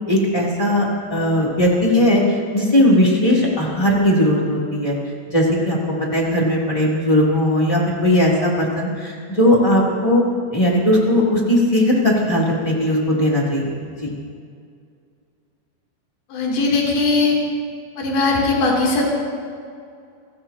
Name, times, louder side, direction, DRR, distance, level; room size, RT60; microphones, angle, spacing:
voice 1, 0.1-2.2 2.5-5.0 5.3-5.8 6.1-10.2 10.5-14.1, left 1 dB, 10° left, -4 dB, 2.4 m, -18 dB
voice 2, 16.3-17.4 18.0-19.0, left 3 dB, 60° left, -3 dB, 4.9 m, -19 dB
27.5 x 17.5 x 2.9 m, 2.3 s
omnidirectional pair, 5.0 m